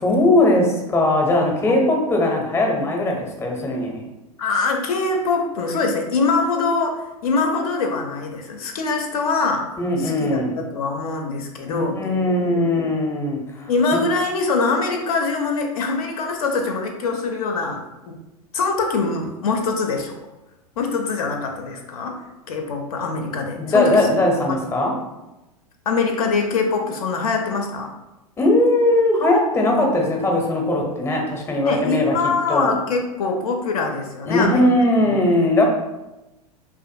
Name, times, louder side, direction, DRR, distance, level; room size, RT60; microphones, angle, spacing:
voice 1, 0.0-4.0 9.8-10.5 11.7-13.7 23.6-24.9 28.4-32.1 32.5-32.7 34.3-35.7, left 1 dB, 15° left, 0 dB, 0.5 m, -19 dB
voice 2, 4.4-9.7 10.0-12.2 12.5-12.7 13.7-17.8 18.1-18.2 18.5-20.2 20.8-22.2 22.5-24.1 24.4-24.6 25.9-27.9 31.6-34.6 35.0-35.2, left 4 dB, 70° left, 3 dB, 0.4 m, -23 dB
2.5 x 2.4 x 2.5 m, 1.0 s
figure-of-eight pair, 95°, 20 cm